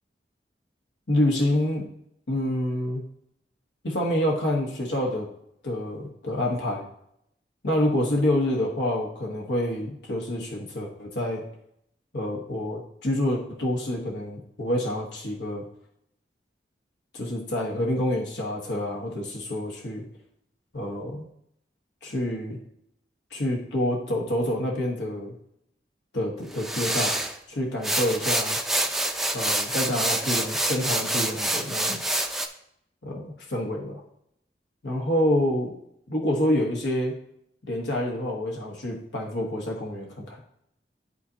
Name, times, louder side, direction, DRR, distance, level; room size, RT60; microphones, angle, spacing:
voice 1, 1.1-1.9 2.3-3.0 3.8-5.3 5.6-6.9 7.6-11.4 12.1-15.6 17.1-20.0 20.7-21.2 22.0-22.6 23.3-25.3 26.1-27.1 27.5-28.6 29.3-32.0 33.0-34.0 34.8-35.7 36.1-37.1 37.6-40.4, left 1 dB, 85° left, -1 dB, 1.3 m, -27 dB
sound 1, 26.5-27.3 27.8-32.5, right 1 dB, ahead, 0.5 m, -27 dB
11.5 x 4.1 x 2.8 m, 0.74 s
head